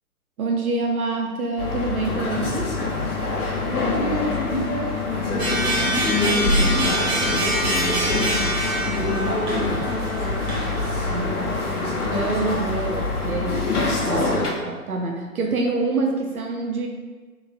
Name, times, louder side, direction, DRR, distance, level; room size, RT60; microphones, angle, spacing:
voice 1, 0.4-2.8 11.1-11.6 12.1-16.9, right 3 dB, 75° right, 1 dB, 0.6 m, -26 dB
sound 1, 1.6-14.5, left 3 dB, 85° left, 0.9 m, -25 dB
voice 2, 3.6-10.7 11.0-11.8, left 2 dB, 50° left, -3 dB, 0.8 m, -32 dB
sound 2, 5.4-11.3, right 1 dB, 45° right, 1.0 m, -26 dB
3.6 x 3.0 x 2.3 m, 1.3 s
figure-of-eight pair, 130°, 44 cm